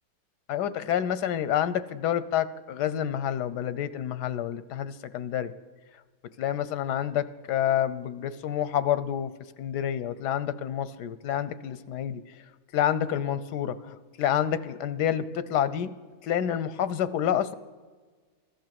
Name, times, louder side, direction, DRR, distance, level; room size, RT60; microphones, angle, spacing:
voice 1, 0.5-5.5 6.4-9.3 9.6-12.2 12.7-15.9 16.2-17.6, left 10 dB, 90° left, 15 dB, 1.3 m, -28 dB
15.5 x 12.0 x 7.6 m, 1.4 s
omnidirectional pair, 1.7 m